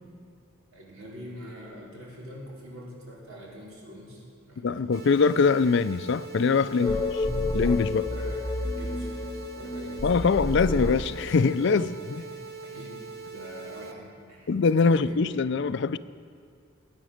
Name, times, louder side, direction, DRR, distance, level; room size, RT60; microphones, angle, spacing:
voice 1, 0.7-5.1 6.7-7.0 8.0-8.4 8.7-10.7 12.2-12.3 12.6-14.5 14.8-15.3, equal, 80° right, 4.4 m, -44 dB
voice 2, 4.6-7.0 7.5-8.1 10.0-12.2 14.5-16.0, left 4 dB, 55° left, 0.4 m, -23 dB
sound 1, 4.9-13.9, right 4 dB, 50° right, 0.9 m, -42 dB
sound 2, 6.8-11.8, left 2 dB, 15° left, 1.0 m, -30 dB
21.0 x 8.8 x 6.4 m
head